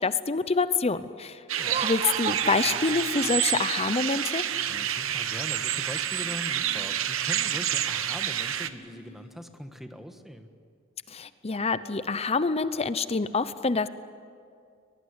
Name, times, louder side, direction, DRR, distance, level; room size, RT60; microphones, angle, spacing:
voice 1, 0.0-1.4 1.8-4.4 11.1-13.9, left 4 dB, 30° left, 13 dB, 0.7 m, -26 dB
Laughter, 1.5-3.9, right 6 dB, 30° right, 0.5 m, -35 dB
sound 1, 1.5-8.7, right 10 dB, 75° right, 1.0 m, -29 dB
sound 2, 2.1-9.6, right 1 dB, 65° left, 5.5 m, -52 dB
voice 2, 4.7-10.5, equal, ahead, 6 dB, 1.4 m, -41 dB
21.5 x 21.5 x 9.6 m, 2.3 s
head